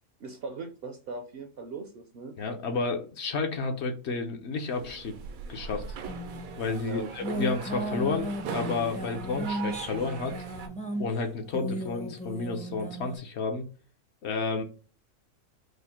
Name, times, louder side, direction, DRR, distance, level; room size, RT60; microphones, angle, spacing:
voice 1, 0.2-2.4 6.8-7.4, right 3 dB, 60° right, 6 dB, 0.7 m, -39 dB
voice 2, 2.4-5.1 5.5-5.8 6.6-10.3 11.0-13.6 14.2-14.6, left 4 dB, 60° left, 5 dB, 0.9 m, -31 dB
sound 1, 4.7-10.7, right 6 dB, 85° right, 1.1 m, -40 dB
sound 2, 6.1-13.2, right 1 dB, 10° left, 0.4 m, -36 dB
5.0 x 2.1 x 4.2 m, 0.37 s
omnidirectional pair, 1.4 m